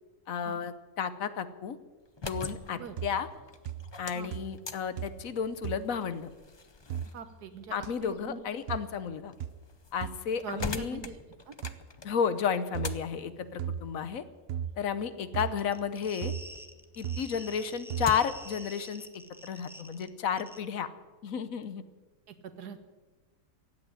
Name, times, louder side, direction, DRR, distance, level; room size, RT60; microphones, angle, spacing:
voice 1, 0.3-1.8 2.2-3.3 4.0-6.3 7.7-9.3 9.9-11.0 12.0-14.2 14.8-16.3 17.0-19.0 19.4-20.9 21.2-21.8, left 7 dB, 65° left, 13 dB, 1.2 m, -32 dB
sound 1, 2.0-16.7 17.1-18.5, left 3 dB, 45° left, 0.3 m, -45 dB
sound 2, 2.3-2.7 3.0-3.4 3.7-4.1 4.3-4.7 5.0-5.3 5.6-5.8 6.9-7.1 7.8-7.9 8.7-8.9 9.4-9.6 10.0-10.2 10.6-10.7 11.6-11.8 12.7-13.0 13.6-13.9 14.5-14.8 15.3-15.6 16.2-16.5 17.0-17.3 17.9-18.2, right 9 dB, 65° right, 0.6 m, -36 dB
voice 2, 7.1-8.4 10.4-11.2 11.5-11.6 22.3-22.8, right 6 dB, 90° right, 10 dB, 1.7 m, -43 dB
sound 3, 15.4-20.1 20.4-20.6, equal, ahead, 0.8 m, -48 dB
16.0 x 8.5 x 10.0 m, 1.3 s
omnidirectional pair, 1.6 m